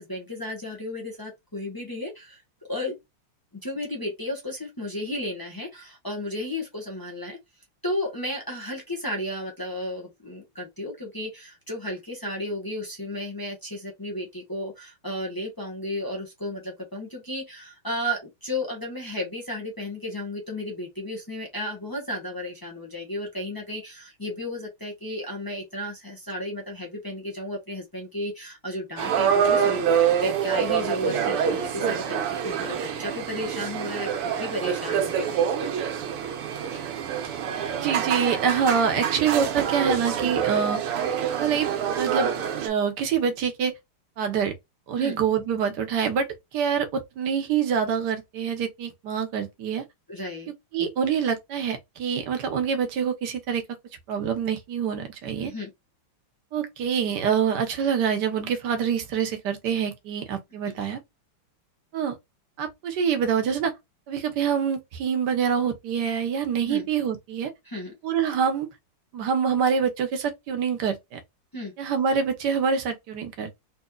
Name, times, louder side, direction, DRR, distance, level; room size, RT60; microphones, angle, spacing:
voice 1, 0.0-2.4 2.7-3.0 3.6-7.4 7.8-35.4 45.0-45.2 50.1-50.5 55.4-55.7 60.6-60.8 66.6-66.9 67.6-67.9 71.5-71.7, left 1 dB, 30° left, 0.4 m, -33 dB
sound 1, 29.0-42.7, right 8 dB, 85° right, 1.8 m, -26 dB
voice 2, 37.7-40.8 41.4-41.7 41.9-42.3 42.6-43.7 44.2-44.5 44.9-46.3 46.5-49.8 50.7-53.6 54.1-55.5 56.5-61.0 61.9-62.2 62.6-63.7 64.1-67.5 68.0-68.7 69.1-71.2 71.8-73.5, right 7 dB, 60° right, 1.2 m, -25 dB
4.1 x 3.1 x 2.3 m
omnidirectional pair, 2.4 m